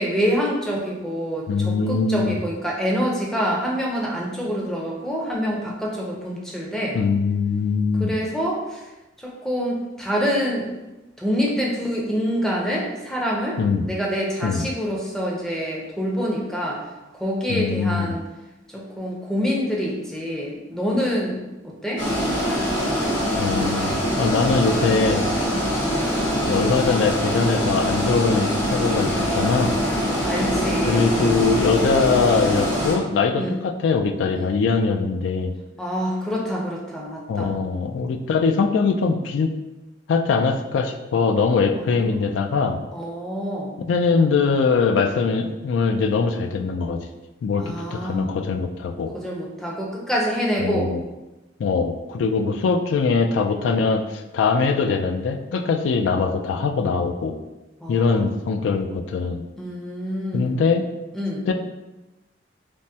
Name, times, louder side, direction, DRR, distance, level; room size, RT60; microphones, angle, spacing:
voice 1, 0.0-7.0 8.0-8.9 9.2-10.7 11.2-13.6 13.8-16.8 17.1-18.2 18.7-22.0 25.5-25.7 30.0-31.4 33.4-33.6 34.4-34.5 35.8-37.6 41.8-42.3 42.9-43.8 47.6-48.3 49.1-50.9 57.8-58.2 59.6-60.6 61.1-61.4, equal, 5° left, -3 dB, 0.5 m, -26 dB
voice 2, 1.5-2.4 6.9-8.1 13.6-13.9 14.4-14.7 17.5-18.2 23.4-25.3 26.5-29.8 30.9-35.5 37.3-39.5 40.1-42.8 43.9-47.0 47.4-47.6 47.9-49.1 50.6-51.0 51.6-57.3 57.9-59.4 60.3-60.8 61.5-61.6, left 4 dB, 80° left, 6 dB, 0.3 m, -22 dB
sound 1, 22.0-32.9, equal, 65° left, 1.3 m, -23 dB
3.3 x 2.1 x 2.7 m, 1.0 s
head